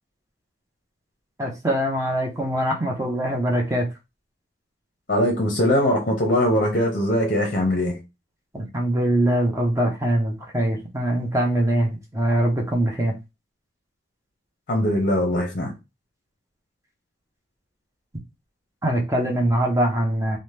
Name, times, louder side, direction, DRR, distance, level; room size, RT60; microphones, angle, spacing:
voice 1, 1.4-3.9 8.5-13.1 18.8-20.4, right 1 dB, 15° right, 0.6 m, -23 dB
voice 2, 5.1-8.0 14.7-15.7, equal, 45° left, 0.6 m, -21 dB
2.8 x 2.1 x 3.2 m
head